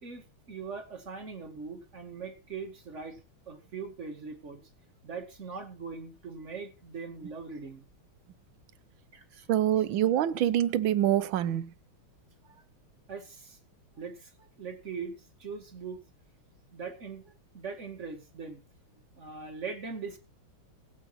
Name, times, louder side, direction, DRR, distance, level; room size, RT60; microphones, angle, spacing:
voice 1, 0.0-4.6 5.0-7.9 9.1-9.5 13.1-13.6 14.0-15.1 15.4-16.0 16.7-18.6 19.2-20.2, right 5 dB, 35° right, 2.3 m, -41 dB
voice 2, 9.5-11.7, right 11 dB, 75° right, 1.5 m, -25 dB
16.5 x 8.6 x 4.3 m
omnidirectional pair, 2.3 m